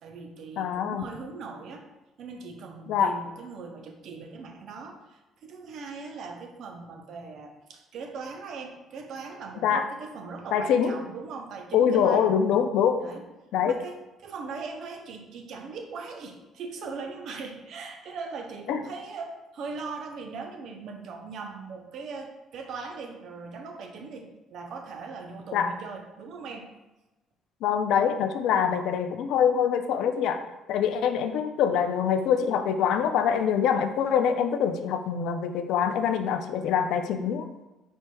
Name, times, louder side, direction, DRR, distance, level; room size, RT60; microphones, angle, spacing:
voice 1, 0.0-1.9 2.2-12.6 13.0-13.2 13.6-14.0 14.2-26.7, right 4 dB, 70° right, 4 dB, 0.6 m, -40 dB
voice 2, 0.6-1.0 2.9-3.1 9.6-9.9 10.5-11.0 11.7-13.0 13.5-13.8 18.7-18.8 25.5-25.7 27.6-37.5, left 8 dB, 75° left, 8 dB, 0.3 m, -24 dB
4.4 x 4.4 x 2.2 m, 1.0 s
supercardioid pair, 70°, 0 cm